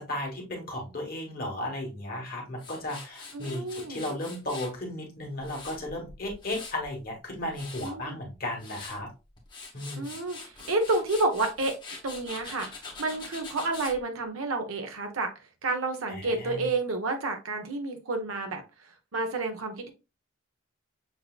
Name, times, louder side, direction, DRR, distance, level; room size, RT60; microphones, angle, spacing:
voice 1, 0.0-9.1 9.7-10.1 16.1-16.7, left 1 dB, 45° left, 0 dB, 1.3 m, -35 dB
Tools, 2.6-4.7 5.2-6.9 7.3-7.9 8.4-9.0 9.4-14.0, left 4 dB, 20° left, 1.0 m, -44 dB
voice 2, 3.3-4.1 7.8-8.2 10.0-11.8 12.0-12.7 13.0-15.3 15.6-18.6 19.1-19.9, right 2 dB, 90° right, 5 dB, 0.8 m, -30 dB
6.4 x 2.7 x 2.3 m, 0.28 s
head